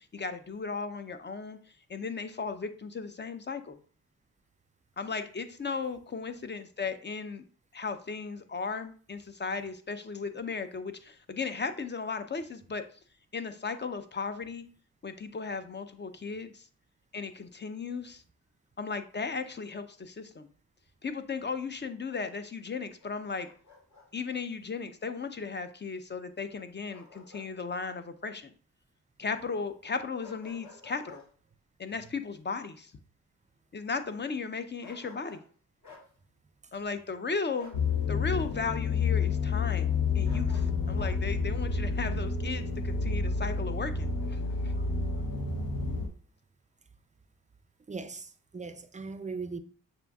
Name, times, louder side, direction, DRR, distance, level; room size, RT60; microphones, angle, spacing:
voice 1, 0.1-1.6 1.9-3.8 5.0-7.4 7.7-12.8 13.3-14.6 15.0-16.7 17.1-18.2 18.8-20.5 21.0-23.5 24.1-28.5 29.2-31.2 31.8-32.9 33.7-35.4 36.7-37.7 38.1-44.7, left 4 dB, 30° left, 0.5 m, -36 dB
Bark, 23.0-24.1 26.9-27.5 27.9-28.0 30.2-31.3 34.8-35.5 35.8-36.1 37.6-37.8 40.2-41.2, left 4 dB, 55° left, 1.5 m, -52 dB
sound 1, 37.7-46.1, left 4 dB, 70° left, 0.9 m, -29 dB
voice 2, 47.9-49.6, right 4 dB, 20° right, 0.4 m, -39 dB
6.6 x 2.5 x 2.3 m
supercardioid pair, 50°, 35 cm